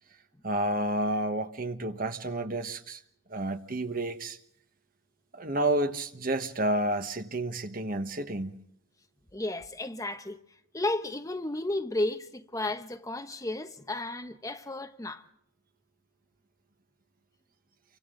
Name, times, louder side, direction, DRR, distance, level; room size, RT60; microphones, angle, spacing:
voice 1, 0.4-3.0 3.3-4.4 5.3-8.6, right 1 dB, 50° right, 1.4 m, -30 dB
voice 2, 9.3-10.4 10.7-15.2, left 2 dB, 20° left, 1.0 m, -33 dB
29.5 x 25.0 x 3.9 m
head